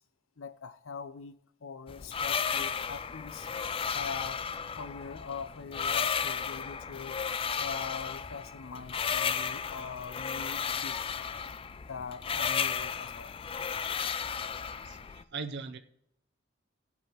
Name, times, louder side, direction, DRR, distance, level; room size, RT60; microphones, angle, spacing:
voice 1, 0.4-1.4 1.6-3.5 3.9-4.4 4.8-7.2 7.6-11.0 11.9-13.3, left 5 dB, 85° left, 0.6 m, -42 dB
sound 1, 1.9-15.2, left 6 dB, 30° left, 0.3 m, -34 dB
voice 2, 14.8-15.8, right 4 dB, 60° right, 0.5 m, -39 dB
16.5 x 8.1 x 3.0 m
head